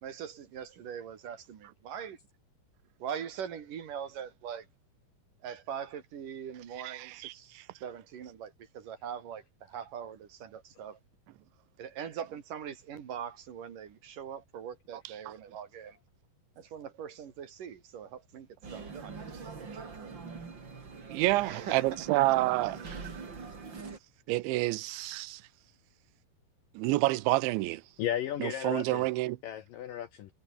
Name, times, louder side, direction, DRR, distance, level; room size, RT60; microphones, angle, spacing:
voice 1, 0.0-2.2 3.0-4.7 5.4-11.0 11.8-16.0 16.6-18.1 18.3-18.5 18.7-20.1 21.4-21.9 22.6-22.7, right 8 dB, 55° right, 3.5 m, -42 dB
voice 2, 6.9-7.3 21.1-22.8 24.3-25.4 26.8-27.8 28.4-29.4, right 19 dB, 90° right, 3.2 m, -28 dB
sound 1, 18.6-24.0, right 4 dB, 30° right, 3.2 m, -44 dB
voice 3, 28.0-29.1 29.4-30.3, left 11 dB, 75° left, 2.1 m, -34 dB
omnidirectional pair, 5.1 m